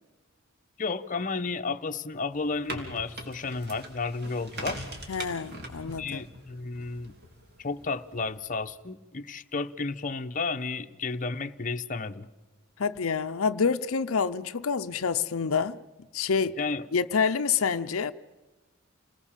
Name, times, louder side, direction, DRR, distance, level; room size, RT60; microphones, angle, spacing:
voice 1, 0.8-4.8 5.8-7.1 7.6-12.3 16.6-16.9, left 4 dB, 40° left, 0.9 m, -32 dB
sound 1, 2.3-8.5, right 1 dB, 50° right, 3.7 m, -42 dB
voice 2, 5.1-6.2 12.8-15.8 16.1-16.5 16.9-18.1, left 5 dB, 85° left, 0.7 m, -27 dB
28.5 x 19.5 x 7.4 m
head